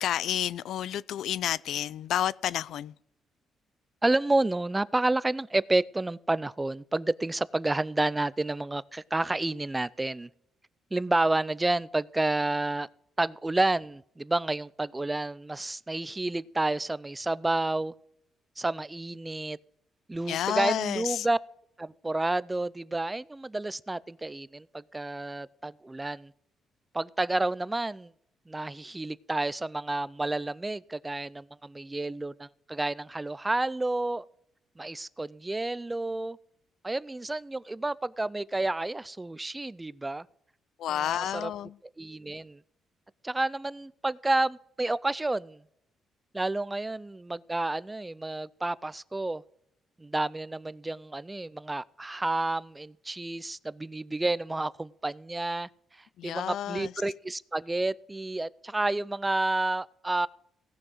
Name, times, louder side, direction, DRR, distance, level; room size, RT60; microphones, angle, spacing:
voice 1, 0.0-2.9 20.3-21.3 40.8-41.8 56.2-56.9, left 11 dB, 75° left, 0.4 m, -30 dB
voice 2, 4.0-10.3 10.9-12.9 13.2-17.9 18.6-19.6 20.1-21.4 21.8-26.3 26.9-28.1 28.5-34.2 34.8-36.4 36.8-40.3 40.9-41.5 42.0-42.6 43.2-45.6 46.3-49.4 50.0-55.7 56.2-60.3, right 2 dB, 15° right, 0.4 m, -30 dB
17.0 x 6.1 x 4.9 m
cardioid pair, 90°, 0 cm